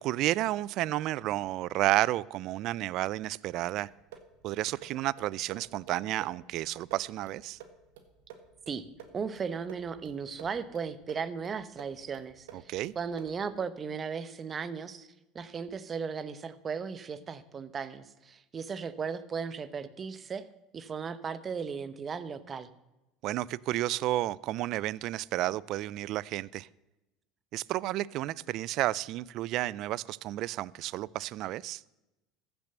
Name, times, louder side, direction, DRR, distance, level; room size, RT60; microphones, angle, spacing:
voice 1, 0.0-3.9 4.4-7.6 12.5-12.9 23.2-26.7 27.5-31.8, right 15 dB, 60° right, 0.4 m, -31 dB
sound 1, 3.8-13.5, right 7 dB, 90° right, 1.6 m, -53 dB
voice 2, 9.1-15.1 15.3-20.5 20.7-22.7, right 6 dB, 30° right, 0.9 m, -36 dB
15.0 x 7.0 x 6.7 m
supercardioid pair, 105°, 0 cm